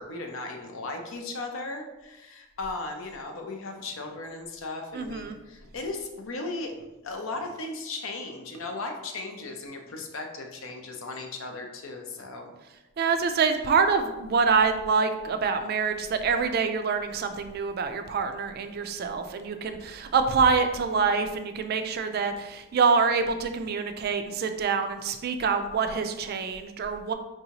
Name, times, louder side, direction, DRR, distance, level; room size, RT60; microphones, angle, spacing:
voice 1, 0.0-6.7 7.0-12.5, left 3 dB, 70° left, 3 dB, 0.6 m, -36 dB
voice 2, 4.9-5.3 13.0-27.1, right 5 dB, 45° right, 7 dB, 0.3 m, -26 dB
4.6 x 2.7 x 2.9 m, 1.0 s
head